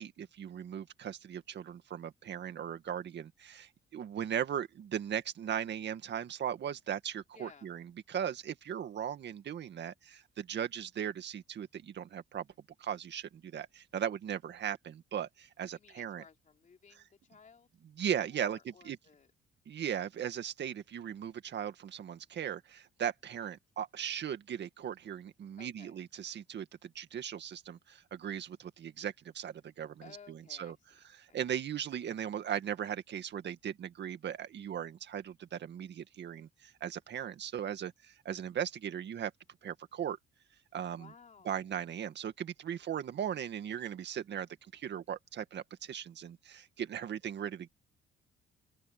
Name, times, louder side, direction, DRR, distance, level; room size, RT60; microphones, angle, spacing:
voice 1, 0.0-12.5 12.8-16.2 17.0-17.1 18.0-19.0 19.7-30.8 31.1-39.3 39.6-40.2 40.7-41.1 41.4-47.7, right 9 dB, 60° right, 2.1 m, -38 dB
voice 2, 7.3-7.7 15.7-17.7 18.3-19.3 25.6-26.0 30.0-31.0 31.3-31.4 40.9-41.8, left 6 dB, 40° left, 3.4 m, -57 dB
cardioid pair, 90°, 20 cm